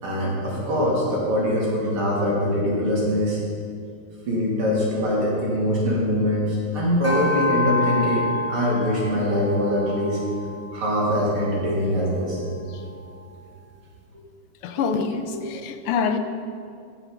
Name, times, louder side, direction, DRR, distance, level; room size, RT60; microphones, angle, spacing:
voice 1, 0.0-3.4 4.3-10.2 10.7-12.4 15.3-15.6, equal, 75° right, -5 dB, 3.5 m, -23 dB
sound 1, 7.0-11.6, left 2 dB, 20° left, 0.4 m, -28 dB
voice 2, 14.6-16.2, left 5 dB, 85° left, 8 dB, 1.7 m, -26 dB
15.0 x 6.0 x 5.6 m, 2.3 s
omnidirectional pair, 2.4 m